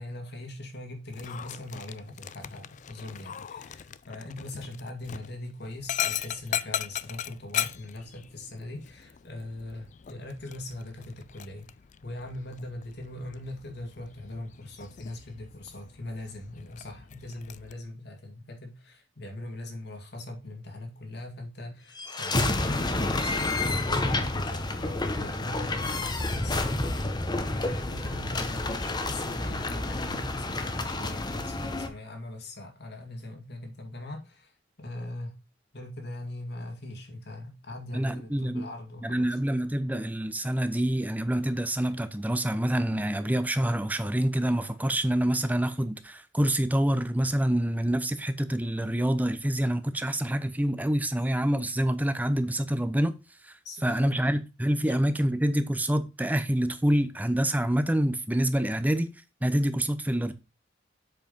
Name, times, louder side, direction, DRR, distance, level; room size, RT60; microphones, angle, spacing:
voice 1, 0.0-11.7 12.0-27.0 27.4-34.5 34.8-35.4 35.7-39.3 53.6-54.4 54.8-55.0, left 1 dB, 60° left, 2.1 m, -41 dB
Dog, 1.1-17.7, left 10 dB, 40° left, 0.4 m, -39 dB
sound 1, 22.0-31.9, left 2 dB, 25° left, 0.9 m, -29 dB
voice 2, 37.9-38.7 39.0-53.1 53.5-53.6 53.8-59.1 59.4-60.3, right 1 dB, 10° right, 0.7 m, -26 dB
7.8 x 4.7 x 5.4 m
head